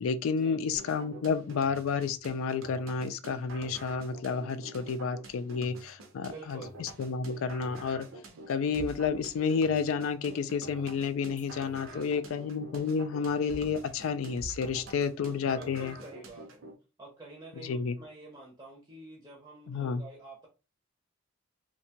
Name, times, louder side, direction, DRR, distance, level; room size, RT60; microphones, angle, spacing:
voice 1, 0.0-8.1 8.5-15.9 17.6-18.0 19.7-20.0, left 5 dB, 80° left, 0.3 m, -31 dB
sound 1, 0.7-16.7, right 2 dB, 80° right, 0.6 m, -47 dB
voice 2, 6.3-6.7 11.8-12.2 15.4-16.6 17.0-20.5, right 2 dB, 15° right, 0.5 m, -48 dB
2.6 x 2.2 x 2.8 m
head